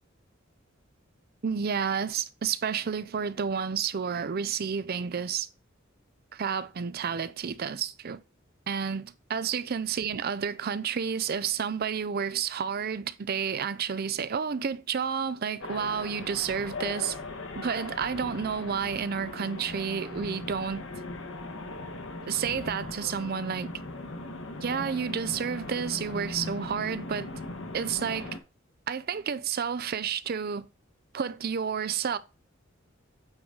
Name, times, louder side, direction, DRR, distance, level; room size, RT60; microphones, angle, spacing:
voice 1, 1.4-5.5 6.3-8.2 8.7-17.2 17.5-20.8 22.3-23.7 24.6-27.3 27.7-28.4 28.9-30.6 31.1-32.2, right 7 dB, 50° right, 0.5 m, -30 dB
sound 1, 15.6-28.4, left 2 dB, 75° left, 1.2 m, -39 dB
8.8 x 4.0 x 3.7 m
head